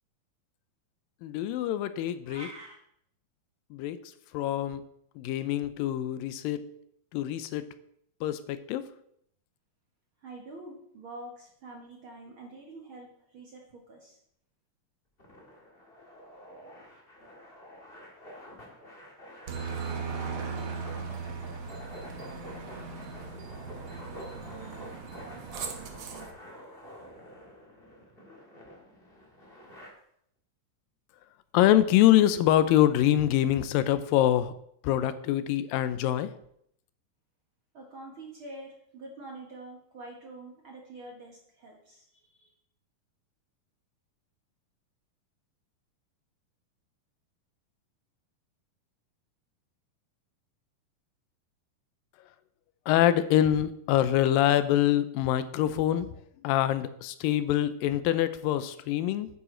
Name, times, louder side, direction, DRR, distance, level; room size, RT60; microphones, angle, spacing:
voice 1, 1.2-2.5 3.7-4.0 4.3-4.8 5.2-6.7 7.1-7.6 8.2-8.9 31.5-34.5 34.8-36.3 52.9-56.1 56.4-59.3, left 12 dB, 85° left, 13 dB, 2.4 m, -25 dB
sound 1, 2.2-2.7, right 2 dB, 30° right, 1.1 m, -44 dB
voice 2, 10.2-14.2 37.7-42.5, right 2 dB, 60° right, 0 dB, 1.4 m, -46 dB
sound 2, 15.2-29.9, equal, 25° left, 1.3 m, -48 dB
Aircraft, 19.5-26.3, right 5 dB, 85° right, 1.1 m, -38 dB
9.9 x 9.0 x 3.8 m, 0.71 s
omnidirectional pair, 4.0 m